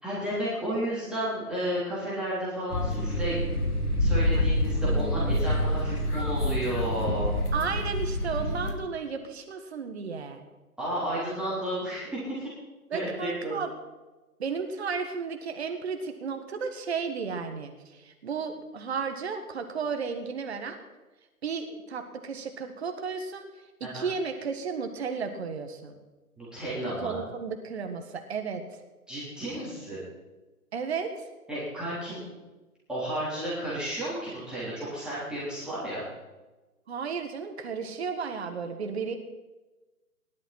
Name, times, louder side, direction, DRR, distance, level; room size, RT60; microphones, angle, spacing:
voice 1, 0.0-3.4 4.0-7.3 10.8-12.5 12.9-13.5 23.8-24.0 26.4-27.2 29.1-30.0 31.5-32.2 32.9-36.0, right 1 dB, ahead, -10 dB, 3.4 m, -32 dB
sound 1, 2.7-8.7, left 1 dB, 75° left, 2.9 m, -27 dB
voice 2, 7.5-10.4 12.9-13.7 14.4-20.8 21.4-23.5 23.8-26.0 27.0-28.8 30.7-31.3 36.9-39.2, right 5 dB, 45° right, 6 dB, 1.7 m, -33 dB
18.0 x 11.5 x 4.3 m, 1.1 s
figure-of-eight pair, 140°, 45 cm